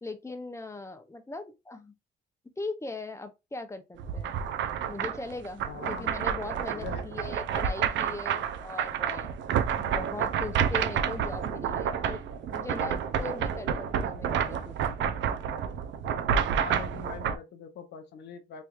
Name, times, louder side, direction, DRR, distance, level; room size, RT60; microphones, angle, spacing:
voice 1, 0.0-1.9 2.6-4.3 4.9-9.4 9.8-12.2 12.5-15.1, left 3 dB, 15° left, 0.6 m, -39 dB
sound 1, 4.0-17.4, right 8 dB, 70° right, 0.5 m, -29 dB
voice 2, 5.7-6.1 6.7-7.2 16.6-18.6, left 7 dB, 60° left, 0.7 m, -42 dB
3.2 x 3.0 x 2.4 m
cardioid pair, 90°, 20 cm